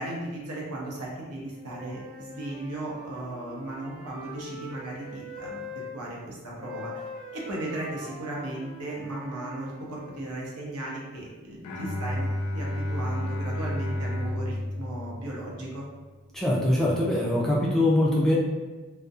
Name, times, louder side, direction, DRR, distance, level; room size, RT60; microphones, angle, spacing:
voice 1, 0.0-5.6 5.9-12.3 12.5-15.9, right 1 dB, 85° right, -3 dB, 0.7 m, -36 dB
Wind instrument woodwind instrument, 1.5-5.9 6.6-10.3, left 1 dB, 25° right, 0.9 m, -43 dB
Bowed string instrument, 11.6-15.8, left 1 dB, 85° left, 0.4 m, -31 dB
voice 2, 16.3-18.3, left 1 dB, ahead, -5 dB, 0.3 m, -23 dB
2.6 x 2.1 x 2.3 m, 1.3 s
head